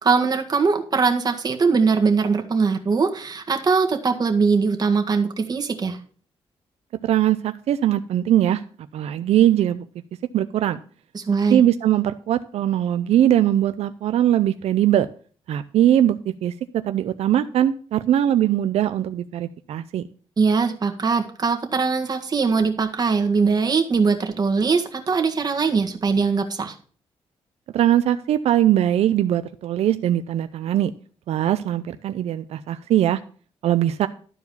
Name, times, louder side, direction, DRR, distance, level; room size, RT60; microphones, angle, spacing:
voice 1, 0.0-6.0 11.1-11.6 20.4-26.7, right 5 dB, 40° right, 4 dB, 1.7 m, -21 dB
voice 2, 7.0-8.6 8.9-9.9 10.3-10.8 11.5-15.1 15.5-16.2 16.4-16.5 16.8-20.0 27.7-30.9 31.3-33.2 33.6-34.1, right 11 dB, 90° right, 11 dB, 0.5 m, -20 dB
12.5 x 4.7 x 7.0 m, 0.43 s
cardioid pair, 100°, 11 cm